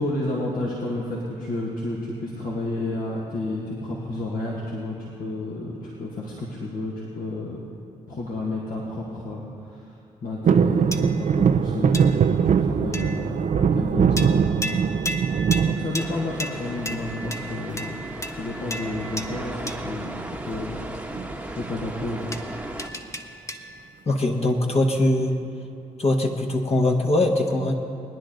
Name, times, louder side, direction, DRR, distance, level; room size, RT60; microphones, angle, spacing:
voice 1, 0.0-7.6 8.1-14.8 15.7-20.8 21.2-22.4, left 2 dB, 65° left, -4 dB, 1.9 m, -31 dB
sound 1, 10.4-16.6 17.1-17.7 18.9-19.4 19.6-19.7 20.0-20.3 21.1-22.1 22.5-22.6, right 7 dB, 50° right, 0.6 m, -22 dB
sound 2, 10.9-11.4 11.9-12.4 12.9-13.4 14.2-20.0 22.3-23.9, equal, 20° left, 1.1 m, -35 dB
sound 3, 16.0-22.9, right 1 dB, 10° right, 1.2 m, -36 dB
voice 2, 24.1-25.4 26.0-27.7, left 1 dB, 40° left, 1 dB, 1.4 m, -21 dB
20.5 x 10.0 x 3.9 m, 2.7 s
hypercardioid pair, 45°, 16 cm